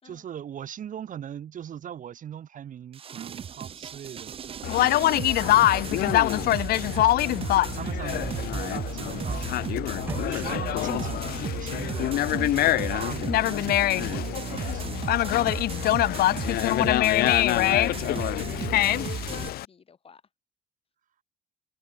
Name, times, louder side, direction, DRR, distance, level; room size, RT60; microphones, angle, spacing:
voice 1, 0.0-7.4 7.7-9.5 10.2-15.5 15.8-16.4, right 9 dB, 50° right, 3.1 m, -41 dB
sound 1, 2.9-19.5, right 8 dB, 35° right, 0.6 m, -35 dB
Conversation, 4.6-19.7, left 15 dB, 65° left, 0.6 m, -24 dB
sound 2, 8.1-11.4, right 2 dB, 10° right, 0.9 m, -40 dB
voice 2, 17.2-20.2, left 6 dB, 35° left, 5.4 m, -53 dB
cardioid pair, 110°, 17 cm